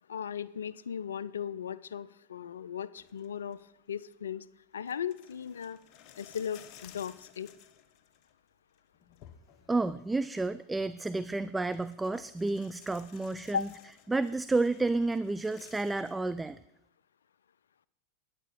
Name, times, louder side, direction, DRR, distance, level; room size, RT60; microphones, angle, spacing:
voice 1, 0.1-3.6 3.9-4.5 4.7-5.8 6.2-7.5 13.5-13.7, left 8 dB, 80° left, 19 dB, 0.4 m, -37 dB
sound 1, 3.0-3.6 4.1-4.2 4.9-8.4 8.7-9.9 11.1-11.2 11.5-16.1, left 10 dB, 50° left, 0.9 m, -56 dB
voice 2, 9.7-13.7 14.1-16.6, right 3 dB, 10° right, 14 dB, 0.3 m, -31 dB
10.0 x 9.7 x 4.2 m, 0.85 s
hypercardioid pair, 90°, 0 cm